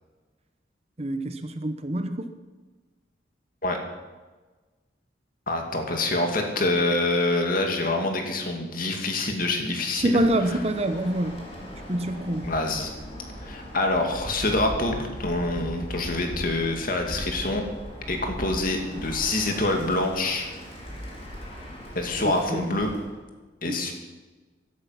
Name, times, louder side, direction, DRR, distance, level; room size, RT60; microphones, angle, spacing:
voice 1, 1.0-2.3 10.0-11.4 11.9-12.5 22.2-22.7 23.7-23.9, right 1 dB, 35° right, 8 dB, 1.0 m, -26 dB
voice 2, 5.5-10.2 12.4-12.9 13.4-17.6 18.1-20.5 21.9-22.9 23.6-23.9, left 2 dB, 50° left, 3 dB, 2.5 m, -26 dB
Bird, 10.1-23.2, equal, 35° left, 4.0 m, -39 dB
15.5 x 12.0 x 5.9 m, 1.3 s
head